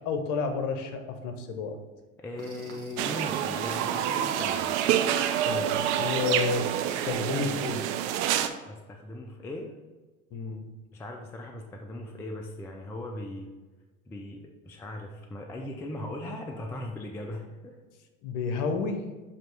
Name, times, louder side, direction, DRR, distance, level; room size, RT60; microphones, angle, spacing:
voice 1, 0.0-1.8 5.4-7.8 10.3-10.6 18.2-19.1, left 4 dB, 45° left, 6 dB, 1.0 m, -31 dB
voice 2, 2.2-4.7 8.7-9.7 10.9-13.5 14.1-17.8, left 1 dB, 5° left, 2 dB, 0.3 m, -38 dB
sound 1, 2.4-7.6, right 2 dB, 85° right, 1.2 m, -51 dB
sound 2, 3.0-8.5, right 10 dB, 55° right, 0.6 m, -27 dB
7.4 x 2.9 x 4.7 m, 1.2 s
figure-of-eight pair, 80°, 42 cm